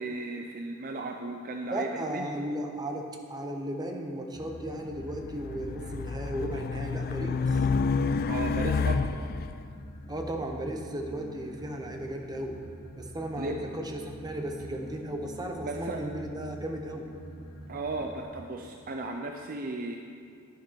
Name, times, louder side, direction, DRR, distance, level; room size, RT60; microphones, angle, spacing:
voice 1, 0.0-2.4 8.3-9.2 13.4-13.6 15.7-16.0 17.7-20.0, right 2 dB, 40° right, 3 dB, 0.5 m, -35 dB
voice 2, 1.7-7.6 10.1-12.5 13.0-17.1, right 1 dB, 20° right, 3 dB, 1.0 m, -35 dB
sound 1, 4.3-18.2, equal, 80° left, 1.7 m, -46 dB
Race car auto racing, 5.2-9.5, left 4 dB, 45° left, 0.3 m, -29 dB
10.5 x 10.5 x 4.7 m, 2.4 s
head